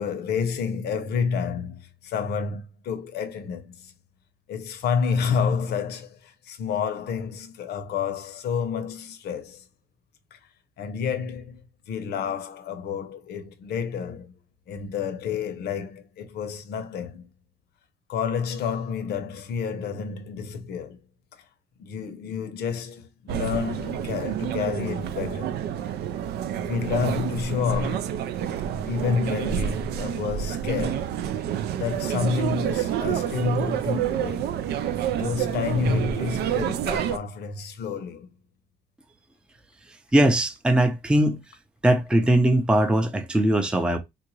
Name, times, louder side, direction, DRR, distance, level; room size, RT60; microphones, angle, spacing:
voice 1, 0.0-3.9 4.5-9.6 10.3-10.4 10.8-14.3 14.7-17.3 18.1-21.0 21.8-25.6 26.6-28.2 28.8-31.1 31.7-34.5 35.1-38.3, left 6 dB, 85° left, 0.7 m, -29 dB
sound 1, 23.3-37.2, right 9 dB, 90° right, 0.4 m, -28 dB
voice 2, 40.1-41.4 41.8-44.0, right 1 dB, 5° right, 0.5 m, -20 dB
3.6 x 2.5 x 3.0 m
cardioid pair, 115°, 16 cm